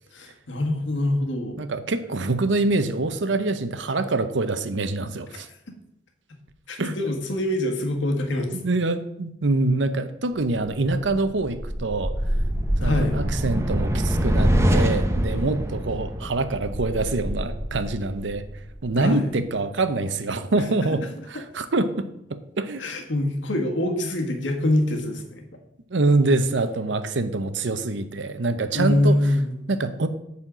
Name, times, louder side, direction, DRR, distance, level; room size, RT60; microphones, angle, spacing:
voice 1, 0.1-1.6 6.7-8.6 12.8-13.2 18.9-19.3 22.8-25.5 28.7-29.5, left 1 dB, 85° left, 2 dB, 1.7 m, -24 dB
voice 2, 1.6-5.5 6.8-7.0 8.5-12.1 12.8-18.4 18.8-22.8 25.9-29.2 29.7-30.1, right 2 dB, 80° right, 10 dB, 0.8 m, -25 dB
sound 1, 10.7-19.1, equal, 15° right, 0.7 m, -25 dB
9.0 x 4.3 x 7.4 m, 0.79 s
head